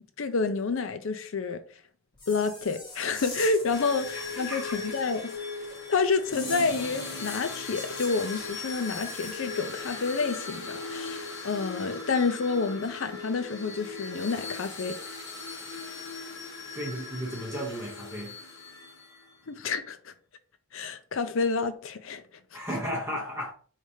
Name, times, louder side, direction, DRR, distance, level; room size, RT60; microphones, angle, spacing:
voice 1, 0.2-1.6 2.3-5.3 5.9-15.0 19.5-20.1 20.7-22.2, left 4 dB, 65° left, 0.5 m, -29 dB
sound 1, 2.1-9.5, left 2 dB, 20° left, 1.2 m, -44 dB
sound 2, 3.7-19.3, left 3 dB, 50° left, 1.0 m, -39 dB
voice 2, 4.1-4.9 16.7-18.4 22.5-23.5, equal, 10° right, 0.9 m, -35 dB
4.9 x 3.2 x 2.7 m
head